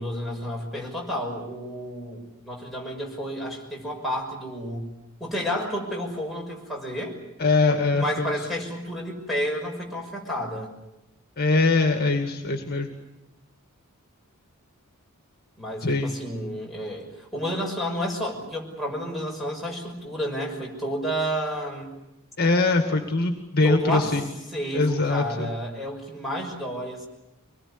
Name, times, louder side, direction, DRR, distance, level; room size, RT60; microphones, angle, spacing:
voice 1, 0.0-4.9 5.2-7.2 7.9-10.7 15.6-21.9 23.6-24.2 24.5-27.1, equal, ahead, -3 dB, 5.9 m, -31 dB
voice 2, 7.4-8.4 11.4-13.0 15.8-16.1 22.4-24.3 24.7-25.5, left 3 dB, 45° left, 5 dB, 2.2 m, -22 dB
25.0 x 21.0 x 9.9 m, 0.95 s
head